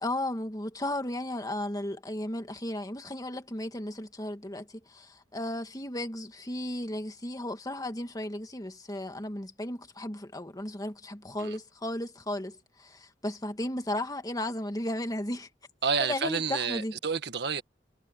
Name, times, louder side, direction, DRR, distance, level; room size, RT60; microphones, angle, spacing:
voice 1, 0.0-15.5 16.0-16.9, left 1 dB, 20° left, 2.0 m, -35 dB
voice 2, 15.8-17.6, right 5 dB, 70° right, 1.7 m, -29 dB
head